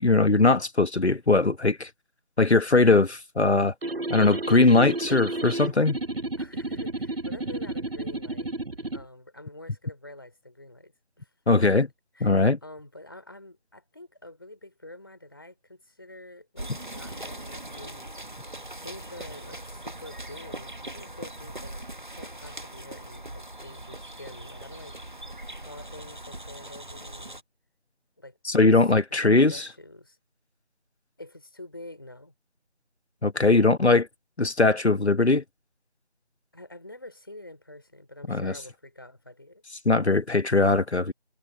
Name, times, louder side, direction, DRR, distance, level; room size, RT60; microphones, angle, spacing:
voice 1, 0.0-1.9 2.4-3.7 4.1-6.0 11.5-11.9 12.2-12.6 28.4-29.7 33.2-34.1 34.4-35.4 38.3-38.5 39.8-41.1, left 3 dB, 80° left, 1.4 m, -20 dB
sound 1, 3.8-9.0, right 2 dB, 60° right, 0.9 m, -32 dB
voice 2, 6.4-8.6 8.9-11.7 12.1-18.5 18.8-25.3 25.6-27.4 28.2-28.4 29.1-30.2 31.2-32.3 36.5-39.6, left 1 dB, 20° left, 3.5 m, -47 dB
sound 2, 16.6-27.4, right 1 dB, 45° right, 1.5 m, -40 dB
figure-of-eight pair, 175°, 33 cm